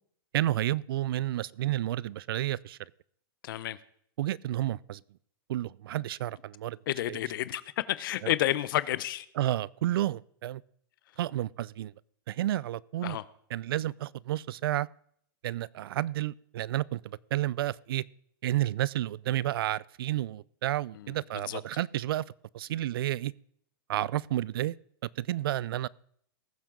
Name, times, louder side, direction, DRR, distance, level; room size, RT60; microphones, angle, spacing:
voice 1, 0.3-2.8 4.2-5.0 5.5-6.8 7.1-7.2 8.2-8.3 9.4-10.6 11.2-11.9 12.3-13.2 13.5-14.9 15.4-18.0 18.4-22.2 22.5-23.3 23.9-24.8 25.2-25.9, right 14 dB, 75° right, 0.4 m, -31 dB
voice 2, 3.4-3.8 6.9-9.3 13.0-13.2 21.0-21.1 21.5-21.6, left 14 dB, 65° left, 0.6 m, -30 dB
19.5 x 7.4 x 3.8 m
hypercardioid pair, 145°, 12 cm